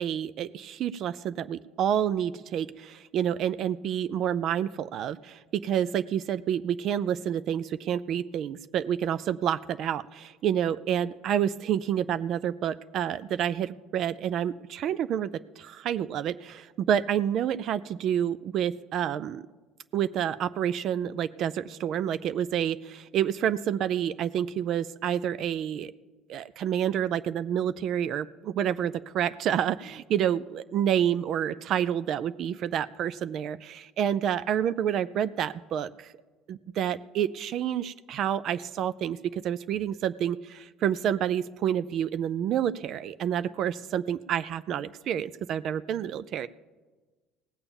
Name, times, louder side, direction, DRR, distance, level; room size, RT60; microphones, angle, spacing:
voice 1, 0.0-15.3 15.6-19.4 19.9-25.9 26.3-36.1 36.5-46.5, right 9 dB, 55° right, 16 dB, 0.4 m, -29 dB
17.5 x 6.8 x 7.1 m, 1.3 s
supercardioid pair, 80°, 0 cm